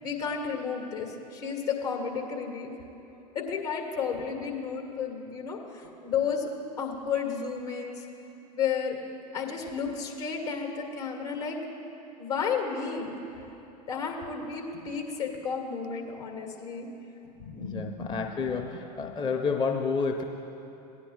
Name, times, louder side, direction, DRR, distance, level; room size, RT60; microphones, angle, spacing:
voice 1, 0.0-2.7 3.3-6.5 6.8-8.1 8.5-9.0 9.3-11.6 12.2-13.2 13.9-16.9 17.4-19.5, left 6 dB, 70° left, 1 dB, 2.1 m, -33 dB
voice 2, 17.5-20.2, left 5 dB, 25° left, 3 dB, 0.6 m, -30 dB
17.5 x 9.9 x 2.4 m, 3.0 s
figure-of-eight pair, 80°, 21 cm